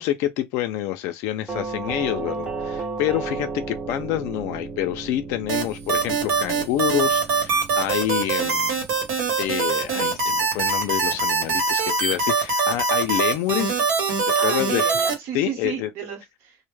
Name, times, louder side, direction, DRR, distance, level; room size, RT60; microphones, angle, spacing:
voice 1, 0.0-8.8 9.4-13.8 14.3-14.9 15.3-15.9, left 13 dB, 70° left, 0.4 m, -27 dB
Doorbell, 1.5-10.3, right 4 dB, 15° right, 0.5 m, -34 dB
sound 1, 5.5-15.1, right 4 dB, 85° right, 1.0 m, -22 dB
voice 2, 14.4-16.7, right 8 dB, 60° right, 0.9 m, -33 dB
2.1 x 2.0 x 3.0 m
cardioid pair, 175°, 5 cm